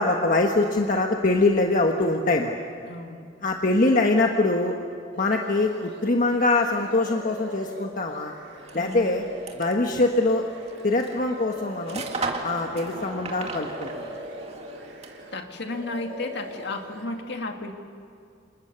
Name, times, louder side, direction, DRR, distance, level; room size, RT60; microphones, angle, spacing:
voice 1, 0.0-2.6 3.4-4.7 5.2-8.3 8.7-9.2 9.5-10.5 10.8-12.0 12.4-14.2, left 2 dB, 45° left, 2 dB, 1.4 m, -23 dB
voice 2, 2.8-3.3 8.7-9.2 15.3-17.7, left 2 dB, 65° left, 4 dB, 2.2 m, -33 dB
sound 1, 5.1-6.1 6.5-13.1 13.4-15.4 15.6-17.0, right 1 dB, 75° right, 4.0 m, -42 dB
sound 2, 8.6-15.4, right 3 dB, 35° right, 2.3 m, -37 dB
29.5 x 26.5 x 6.9 m, 2.3 s
head